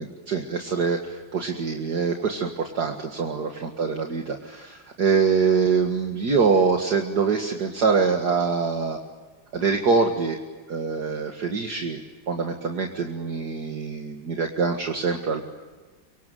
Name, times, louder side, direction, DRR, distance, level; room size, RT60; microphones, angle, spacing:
voice 1, 0.0-9.0 9.5-10.4 10.7-15.4, right 5 dB, 55° right, 3 dB, 2.4 m, -24 dB
25.0 x 24.5 x 9.2 m, 1.3 s
omnidirectional pair, 2.2 m